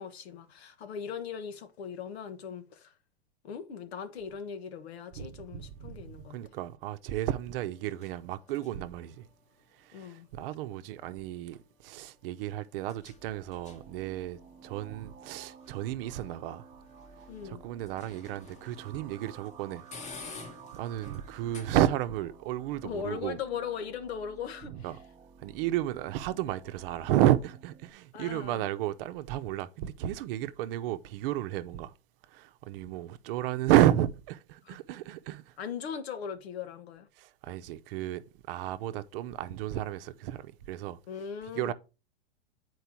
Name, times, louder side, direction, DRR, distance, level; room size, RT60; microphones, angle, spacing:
voice 1, 0.0-2.9 3.4-6.4 9.9-10.3 17.3-17.6 22.8-25.0 28.1-28.7 34.6-34.8 35.6-37.1 41.1-41.7, left 7 dB, 80° left, 1.3 m, -39 dB
sound 1, 4.7-22.2, left 4 dB, 20° left, 1.0 m, -54 dB
voice 2, 5.1-9.3 9.8-16.7 17.4-19.8 20.7-23.4 24.7-25.0 25.4-31.9 32.3-35.4 37.2-41.0 41.5-41.7, right 13 dB, 60° right, 0.8 m, -32 dB
sound 2, 12.9-27.9, right 6 dB, 20° right, 0.9 m, -53 dB
8.1 x 4.7 x 4.5 m
hypercardioid pair, 120°, 31 cm